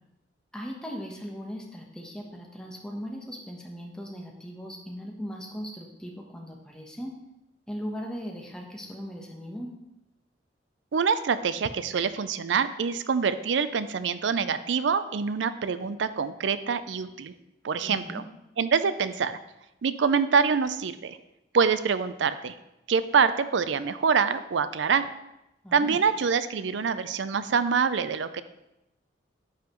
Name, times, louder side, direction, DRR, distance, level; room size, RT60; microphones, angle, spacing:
voice 1, 0.5-7.2 7.7-9.7 17.8-18.2 25.6-26.0, equal, 5° left, 0 dB, 1.0 m, -38 dB
voice 2, 10.9-17.3 17.6-18.2 18.6-19.4 19.8-21.2 21.5-22.5 22.9-25.1 25.7-28.4, right 6 dB, 85° right, 13 dB, 0.4 m, -25 dB
10.0 x 5.7 x 3.0 m, 0.91 s
head